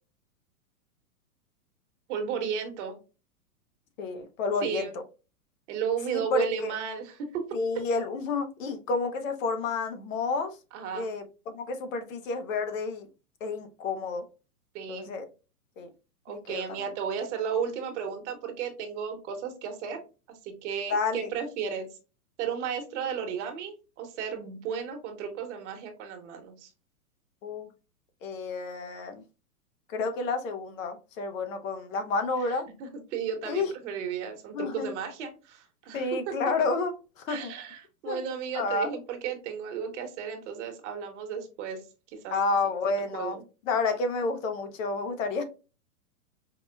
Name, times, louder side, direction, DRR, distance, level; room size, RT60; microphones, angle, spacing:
voice 1, 2.1-2.9 4.6-4.9 5.7-7.4 10.7-11.1 14.7-15.1 16.2-20.0 20.3-21.9 22.4-26.7 32.4-32.5 32.8-36.3 37.3-41.8 42.2-42.3 43.1-43.4, right 7 dB, 50° right, 1.1 m, -34 dB
voice 2, 4.0-5.0 6.1-6.7 7.5-10.5 10.9-13.1 13.4-14.3 14.9-15.2 15.8-15.9 16.3-16.9 20.9-21.3 27.4-27.7 28.2-29.2 29.9-32.7 33.5-33.7 34.5-34.9 35.9-37.5 38.1-38.2 38.5-38.9 42.3-43.4 43.7-45.4, left 3 dB, 55° left, 0.8 m, -30 dB
4.8 x 2.2 x 2.2 m
hypercardioid pair, 130°, 45 cm